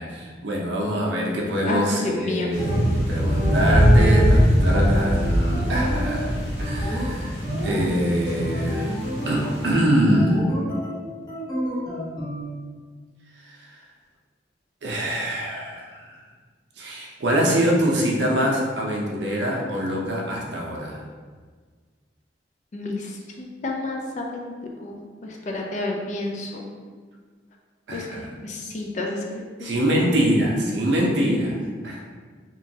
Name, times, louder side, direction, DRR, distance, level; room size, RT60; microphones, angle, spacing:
voice 1, 0.0-6.3 6.6-8.9 9.3-10.5 13.4-13.8 14.8-16.2 16.8-21.0 27.9-28.3 29.6-31.6 31.8-32.0, equal, 75° right, -1 dB, 0.5 m, -24 dB
voice 2, 1.7-2.5 22.7-26.7 27.9-29.2 29.6-29.7, left 2 dB, 40° left, 0 dB, 0.4 m, -30 dB
sound 1, 2.5-9.8, equal, 75° left, 1.4 m, -22 dB
sound 2, 2.6-2.9 3.2-6.2 6.6-7.1 7.4-7.9 8.4-9.4 10.1-11.0 11.3-12.4, right 1 dB, 20° left, 0.7 m, -28 dB
3.0 x 2.2 x 2.7 m, 1.5 s
head